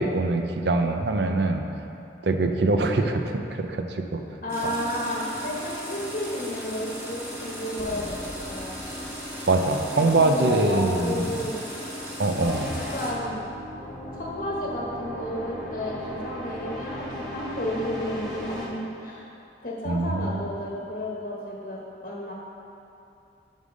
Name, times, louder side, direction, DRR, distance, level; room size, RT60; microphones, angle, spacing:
voice 1, 0.0-1.6 2.2-4.2 4.6-4.7 9.5-11.3 12.2-12.8 19.9-20.4, right 2 dB, 65° right, 5 dB, 0.6 m, -23 dB
voice 2, 4.4-8.1 8.4-8.8 9.9-11.7 12.9-13.4 14.1-19.3 19.6-22.3, left 1 dB, 45° left, -4 dB, 1.2 m, -32 dB
sound 1, 4.5-13.1, equal, 15° right, 1.9 m, -37 dB
sound 2, 7.8-10.5, left 1 dB, 25° left, 0.5 m, -44 dB
sound 3, 12.4-18.6, equal, 5° left, 1.6 m, -36 dB
7.3 x 5.5 x 6.4 m, 2.8 s
head